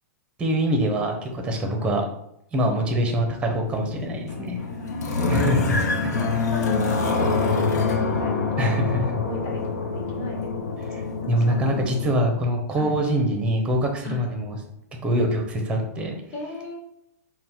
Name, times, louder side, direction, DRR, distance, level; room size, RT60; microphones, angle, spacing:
voice 1, 0.4-2.0 2.5-4.6 5.3-5.8 8.6-9.2 10.9-11.0 11.3-14.6 15.0-16.2, equal, 10° right, 3 dB, 0.6 m, -24 dB
sound 1, 3.6-12.2, left 4 dB, 80° left, 0.7 m, -26 dB
voice 2, 4.6-11.7 12.7-13.0 14.0-14.3 16.3-16.8, left 2 dB, 30° left, -1 dB, 1.1 m, -36 dB
3.9 x 2.1 x 4.3 m, 0.79 s
hypercardioid pair, 140°, 9 cm